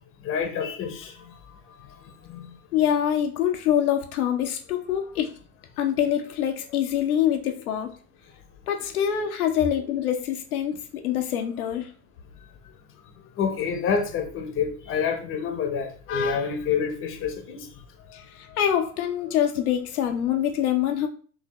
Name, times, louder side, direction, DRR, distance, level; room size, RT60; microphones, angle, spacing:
voice 1, 0.2-1.3 2.2-2.5 13.4-17.7, left 6 dB, 30° left, 5 dB, 0.9 m, -28 dB
voice 2, 2.7-5.3 5.8-7.9 8.7-11.9 18.1-21.1, left 10 dB, 70° left, 4 dB, 0.8 m, -25 dB
4.5 x 2.8 x 3.0 m, 0.42 s
hypercardioid pair, 95°, 45 cm